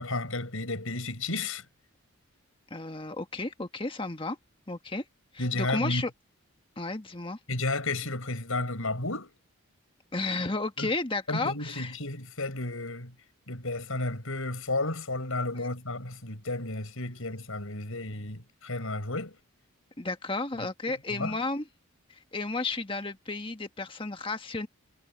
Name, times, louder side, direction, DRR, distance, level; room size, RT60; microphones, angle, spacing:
voice 1, 0.0-1.7 5.4-6.0 7.5-9.3 10.8-10.9 11.3-13.1 13.5-19.4 20.6-21.4, left 2 dB, 70° left, 6.0 m, -32 dB
voice 2, 2.7-4.4 4.7-5.0 5.3-6.1 6.8-7.4 10.1-11.9 15.5-15.6 20.0-21.6 22.1-24.7, left 3 dB, 25° left, 1.5 m, -33 dB
head